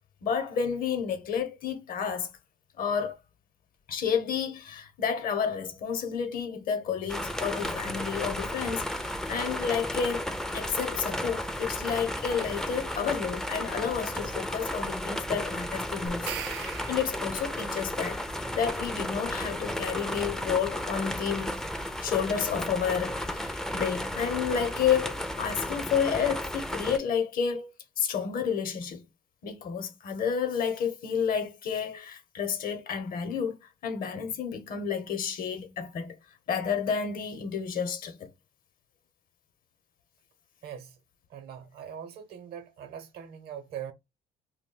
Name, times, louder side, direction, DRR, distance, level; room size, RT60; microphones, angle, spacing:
voice 1, 0.2-2.3 2.8-3.2 3.9-18.2 18.5-21.5 22.0-27.7 28.0-29.0 29.4-33.6 33.8-36.2 36.5-38.3, left 7 dB, 55° left, 0.8 m, -30 dB
sound 1, 7.1-27.0, left 1 dB, 5° left, 0.4 m, -34 dB
sound 2, 16.1-17.6, right 11 dB, 85° right, 0.4 m, -39 dB
voice 2, 40.6-41.0 41.3-43.9, right 8 dB, 70° right, 0.8 m, -41 dB
2.3 x 2.2 x 3.7 m
cardioid pair, 110°, 17 cm